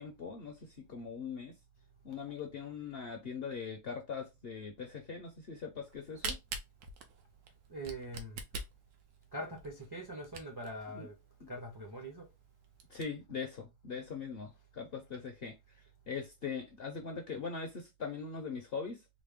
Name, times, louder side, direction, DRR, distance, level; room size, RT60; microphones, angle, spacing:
voice 1, 0.0-1.6 2.0-6.4 10.9-11.1 11.4-11.5 12.9-15.5 16.1-19.0, left 5 dB, 55° left, 0.7 m, -41 dB
Camera, 5.8-10.8 11.3-11.4 11.6-11.7 12.2-12.3 12.6-13.0, right 4 dB, 80° right, 1.2 m, -42 dB
voice 2, 7.7-8.4 9.3-11.2 11.5-12.3, right 1 dB, 25° right, 0.5 m, -43 dB
4.1 x 2.0 x 3.5 m
omnidirectional pair, 1.6 m